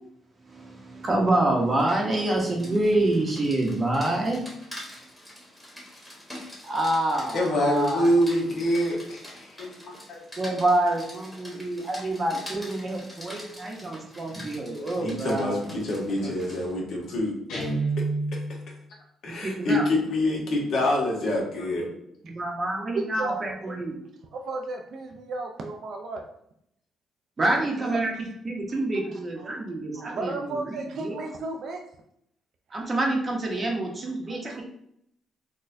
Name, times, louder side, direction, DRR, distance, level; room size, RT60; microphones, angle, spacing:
voice 1, 0.4-4.4 6.6-8.1 10.4-15.6 16.2-16.3 19.3-19.9 22.2-24.0 27.4-28.1 28.4-31.1 32.7-34.6, right 1 dB, 35° right, 1 dB, 0.7 m, -27 dB
Rain, 1.6-16.7, equal, ahead, 1.1 m, -45 dB
voice 2, 7.3-10.2 15.0-17.3 17.6-17.7 19.2-21.9, left 1 dB, 65° left, -1 dB, 1.0 m, -26 dB
Guitar, 17.5-18.7, right 3 dB, 90° left, 0.9 m, -28 dB
voice 3, 22.9-23.4 24.3-26.2 27.8-28.0 28.7-28.8 29.1-29.5 30.0-31.8 34.3-34.6, right 3 dB, 65° right, 2 dB, 0.4 m, -34 dB
4.1 x 2.2 x 2.5 m, 0.74 s
cardioid pair, 90°, 0 cm